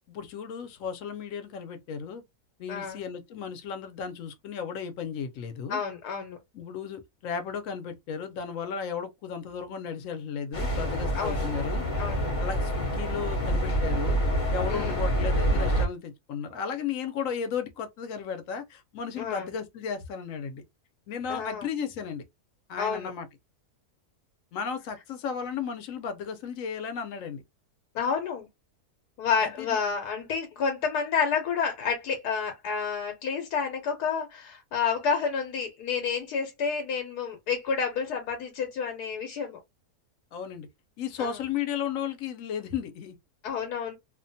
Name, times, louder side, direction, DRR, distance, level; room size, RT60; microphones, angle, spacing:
voice 1, 0.1-2.2 2.6-5.8 6.5-11.8 12.4-14.2 14.5-20.6 21.1-22.2 22.7-23.3 24.5-27.4 29.4-29.8 40.3-40.7 41.0-43.2, left 7 dB, 65° left, 0.9 m, -34 dB
voice 2, 2.7-3.0 5.7-6.4 11.1-11.5 12.0-12.3 14.7-15.0 19.2-19.5 21.3-21.7 22.8-23.1 27.9-28.5 29.2-39.6 41.2-41.4 43.4-44.0, left 6 dB, 90° left, 1.2 m, -29 dB
sound 1, 10.5-15.9, equal, 35° left, 0.9 m, -27 dB
2.7 x 2.2 x 2.6 m
omnidirectional pair, 1.7 m